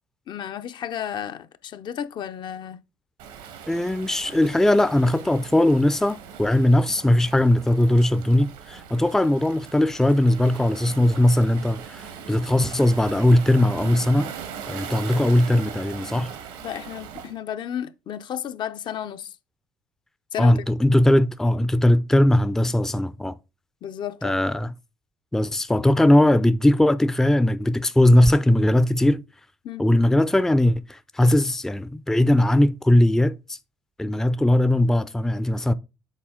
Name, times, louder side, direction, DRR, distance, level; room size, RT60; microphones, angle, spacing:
voice 1, 0.3-2.8 16.6-19.4 20.3-20.5 23.8-24.5 29.6-29.9, left 9 dB, 55° left, 0.6 m, -33 dB
Waves surf, 3.2-17.3, right 7 dB, 85° right, 1.2 m, -40 dB
voice 2, 3.7-14.3 14.7-16.3 20.4-23.4 24.2-24.7 25.3-29.2 29.8-33.6 34.0-35.7, left 1 dB, 5° left, 0.4 m, -19 dB
7.4 x 4.1 x 3.7 m
supercardioid pair, 70°, 9 cm